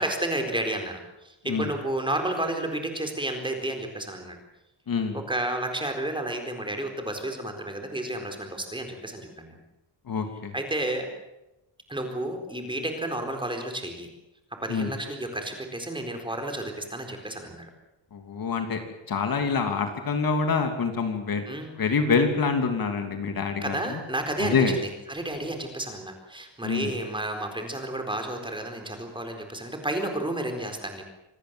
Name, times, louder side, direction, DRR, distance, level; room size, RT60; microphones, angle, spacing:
voice 1, 0.0-4.4 5.1-9.6 10.5-11.1 11.9-14.1 14.5-17.7 21.4-21.7 23.6-31.0, right 1 dB, 10° right, 4 dB, 4.2 m, -31 dB
voice 2, 4.9-5.2 10.1-10.5 14.7-14.9 18.1-18.8 19.1-21.4 21.8-24.0 24.4-24.8 26.6-26.9, left 5 dB, 45° left, 6 dB, 3.0 m, -26 dB
26.5 x 19.5 x 7.7 m, 0.92 s
wide cardioid pair, 165°, 47 cm